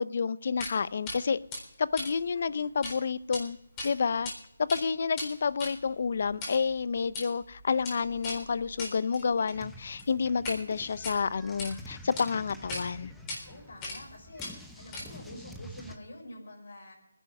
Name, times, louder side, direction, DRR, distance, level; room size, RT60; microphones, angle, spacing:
voice 1, 0.0-1.4 1.8-3.6 3.8-4.3 4.6-13.1, left 5 dB, 50° left, 18 dB, 0.6 m, -29 dB
sound 1, 0.6-0.8 1.1-1.2 1.5-3.0 3.2-3.4 3.8-4.3 4.6-10.6 10.9-11.7 12.2-12.3 12.7-12.8 13.3-13.4 13.8-14.1 14.4-15.3, left 2 dB, 15° left, 3.8 m, -39 dB
sound 2, 9.5-16.0, equal, ahead, 1.0 m, -48 dB
voice 2, 13.4-14.5 14.8-16.9, left 1 dB, 65° left, 2 dB, 5.7 m, -47 dB
21.0 x 11.0 x 5.4 m, 0.83 s
hypercardioid pair, 165°, 0 cm